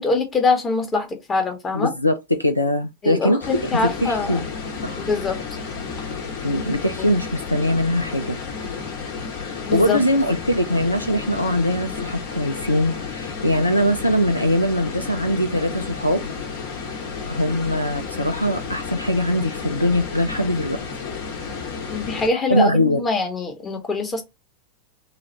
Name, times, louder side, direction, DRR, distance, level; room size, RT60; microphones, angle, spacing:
voice 1, 0.0-1.9 3.0-4.4 5.0-5.4 9.7-10.0 21.9-24.2, left 3 dB, 20° left, 1.1 m, -23 dB
voice 2, 1.7-4.5 4.8-5.0 6.4-8.4 9.4-16.2 17.3-20.8 22.5-23.0, left 1 dB, 85° left, 0.4 m, -22 dB
sound 1, 3.4-22.3, left 5 dB, 50° left, 1.0 m, -32 dB
3.9 x 2.4 x 3.1 m
figure-of-eight pair, 90°, 0 cm